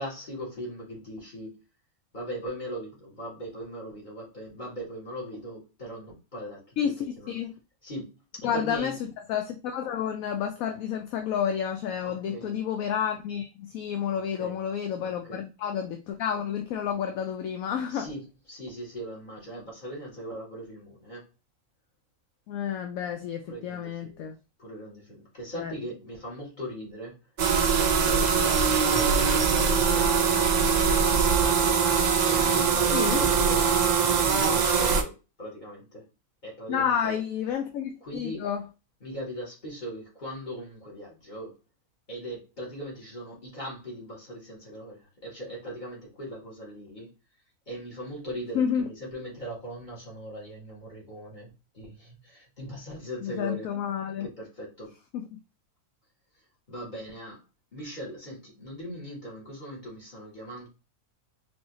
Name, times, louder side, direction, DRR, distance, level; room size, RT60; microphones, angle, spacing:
voice 1, 0.0-1.6 2.1-7.4 7.8-9.0 12.0-12.5 14.1-14.6 15.0-15.4 17.9-21.3 23.5-24.3 24.6-27.2 27.7-31.8 32.2-36.1 36.4-37.2 38.0-38.5 39.0-41.6 42.1-47.1 47.7-53.7 54.2-54.9 56.7-57.4 57.7-60.7, equal, 30° left, 2.3 m, -39 dB
voice 2, 8.4-8.9 9.3-18.1 22.5-24.4 25.6-25.7 32.9-33.3 36.7-38.6 48.5-48.9 53.2-54.3 55.1-55.4, left 8 dB, 75° left, 1.0 m, -30 dB
sound 1, 27.4-35.0, right 6 dB, 75° right, 0.4 m, -22 dB
4.4 x 3.4 x 2.8 m
omnidirectional pair, 1.6 m